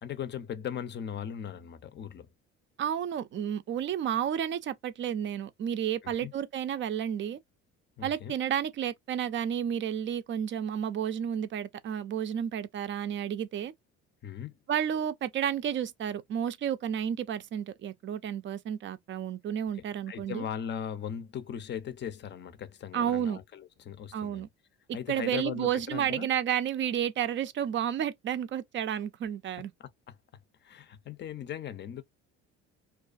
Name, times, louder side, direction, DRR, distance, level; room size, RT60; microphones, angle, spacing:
voice 1, 0.0-2.3 6.0-6.3 8.0-8.3 14.2-14.6 20.1-24.5 24.9-26.3 29.8-30.2 30.6-32.0, left 9 dB, 35° left, 0.5 m, -38 dB
voice 2, 2.8-7.4 8.0-13.7 14.7-20.4 22.9-23.4 24.1-24.5 25.1-29.7, right 9 dB, 40° right, 0.4 m, -31 dB
2.4 x 2.3 x 2.4 m
supercardioid pair, 85°, 31 cm